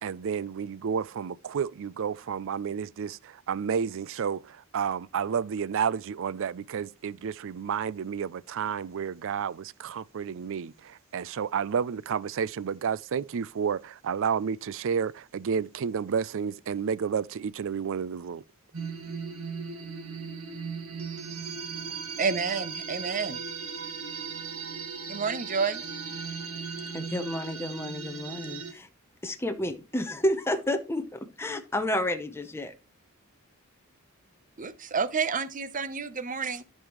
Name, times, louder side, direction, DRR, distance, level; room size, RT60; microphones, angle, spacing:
voice 1, 0.0-18.4, right 7 dB, 65° right, 0.4 m, -31 dB
sound 1, 18.7-28.7, right 5 dB, 90° right, 1.7 m, -37 dB
voice 2, 22.2-23.4 25.1-25.8 34.6-36.6, right 5 dB, 40° right, 0.7 m, -29 dB
voice 3, 26.9-28.9 29.2-32.7, left 1 dB, 10° left, 0.8 m, -30 dB
13.5 x 5.4 x 3.0 m
head